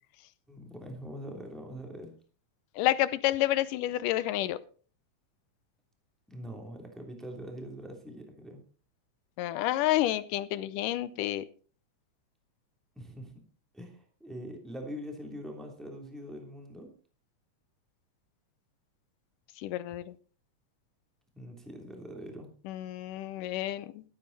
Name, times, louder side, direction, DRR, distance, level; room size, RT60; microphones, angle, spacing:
voice 1, 0.5-2.1 6.3-8.6 12.9-13.4 13.7-16.9 21.3-22.5, equal, ahead, 2 dB, 2.5 m, -43 dB
voice 2, 2.8-4.6 9.4-11.5 19.6-20.2 22.6-24.0, left 14 dB, 85° left, 16 dB, 2.3 m, -29 dB
13.5 x 13.0 x 4.1 m, 0.39 s
omnidirectional pair, 3.7 m